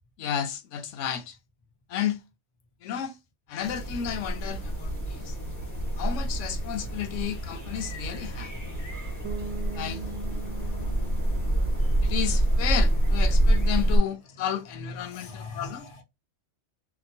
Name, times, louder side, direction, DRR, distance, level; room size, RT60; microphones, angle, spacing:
voice 1, 0.2-1.4 1.9-2.2 2.8-3.2 3.5-5.4 6.0-8.5 9.8-10.0 12.0-15.9, left 9 dB, 85° left, 0.9 m, -32 dB
sound 1, 3.6-14.0, right 1 dB, 15° left, 1.2 m, -27 dB
Bass guitar, 9.2-13.0, right 3 dB, 80° right, 0.9 m, -41 dB
voice 2, 10.0-12.1 13.7-16.0, left 3 dB, 35° left, 0.5 m, -46 dB
2.9 x 2.1 x 2.7 m
omnidirectional pair, 1.2 m